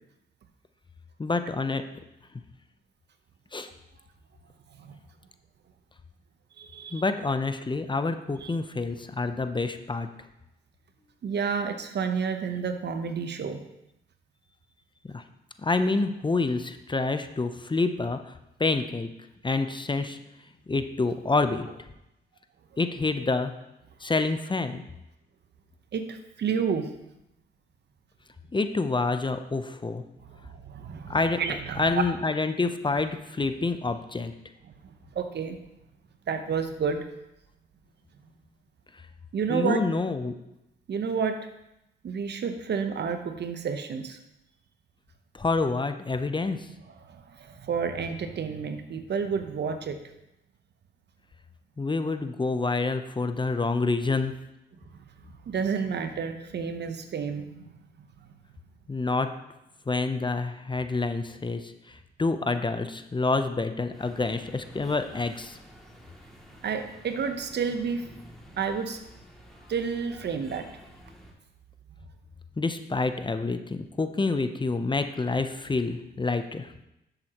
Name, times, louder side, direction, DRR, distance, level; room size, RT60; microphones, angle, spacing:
voice 1, 1.2-1.8 3.5-3.7 6.9-10.1 15.1-15.2 15.6-18.3 18.6-19.1 19.4-20.2 20.7-21.7 22.8-23.5 24.0-24.8 28.5-30.0 31.1-31.4 31.8-34.3 39.5-40.3 45.3-46.7 51.8-54.3 58.9-59.3 59.9-65.6 72.6-76.7, left 3 dB, 25° left, 9 dB, 0.8 m, -27 dB
voice 2, 6.6-7.0 8.4-8.6 11.2-13.6 25.9-26.9 30.2-32.0 34.8-35.6 36.3-37.0 39.3-39.8 40.9-41.4 42.0-44.2 47.0-50.0 54.9-57.7 58.0-58.3 66.6-68.1 68.6-69.0 69.7-70.7, right 6 dB, 55° right, 7 dB, 1.0 m, -30 dB
sound 1, 63.9-71.3, equal, ahead, 2.6 m, -50 dB
10.5 x 7.8 x 3.0 m, 0.88 s
supercardioid pair, 55°, 20 cm